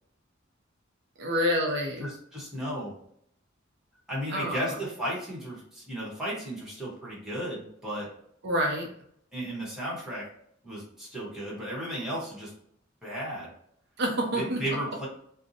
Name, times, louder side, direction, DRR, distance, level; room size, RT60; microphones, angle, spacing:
voice 1, 1.2-2.1 4.3-4.8 8.4-8.9 14.0-14.6, equal, 60° right, -1 dB, 0.5 m, -27 dB
voice 2, 2.0-2.9 4.1-8.1 9.3-10.3 10.6-12.5 13.0-13.5 14.3-15.1, equal, 5° right, -6 dB, 0.9 m, -34 dB
2.6 x 2.0 x 2.7 m, 0.68 s
head